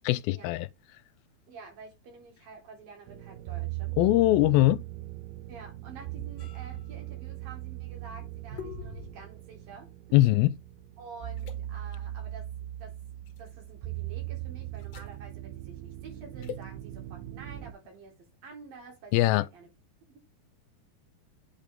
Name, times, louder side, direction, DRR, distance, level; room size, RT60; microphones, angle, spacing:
voice 1, 0.1-0.7 4.0-4.8 10.1-10.5 19.1-19.5, left 16 dB, 90° left, 2.4 m, -22 dB
voice 2, 1.5-4.0 5.5-10.2 11.0-12.5 12.8-13.0 13.4-18.2 18.4-19.7 20.1-20.3, right 4 dB, 75° right, 5.2 m, -49 dB
sound 1, 3.1-17.7, right 15 dB, 90° right, 2.6 m, -39 dB
sound 2, 5.3-7.0 7.3-7.6 7.9-9.2, left 1 dB, 55° right, 2.0 m, -49 dB
sound 3, 6.4-10.9 11.3-11.6 13.3-13.5 14.7-15.2 16.4-16.7, left 9 dB, 55° left, 2.2 m, -47 dB
8.7 x 5.1 x 3.5 m
omnidirectional pair, 4.2 m